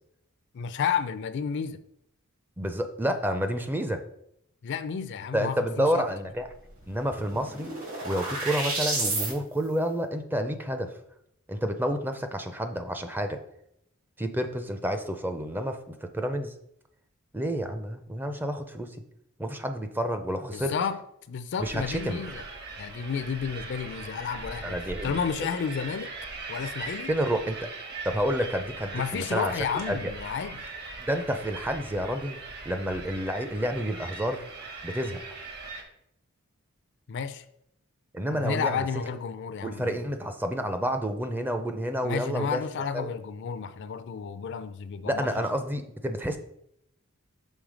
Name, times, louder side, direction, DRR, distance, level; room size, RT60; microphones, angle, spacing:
voice 1, 0.5-1.8 4.6-6.0 20.5-21.0 21.3-22.4 22.8-26.1 26.5-27.1 28.9-30.7 37.1-37.4 38.3-40.1 42.0-45.3, left 6 dB, 55° left, 0.4 m, -32 dB
voice 2, 2.6-4.0 5.3-6.5 6.9-7.7 8.0-10.9 11.5-13.4 14.2-16.5 17.3-19.0 19.4-20.7 21.6-22.2 24.6-25.3 27.1-27.6 28.0-29.5 29.9-30.1 31.0-32.4 32.7-34.5 34.8-35.2 38.1-38.8 39.6-42.6 42.9-43.1 45.0-46.4, equal, 10° right, 0.4 m, -29 dB
sound 1, 6.5-6.6 6.8-9.3, right 2 dB, 75° right, 2.7 m, -31 dB
sound 2, 21.6-35.8, right 3 dB, 50° right, 1.1 m, -40 dB
6.3 x 3.5 x 5.0 m
head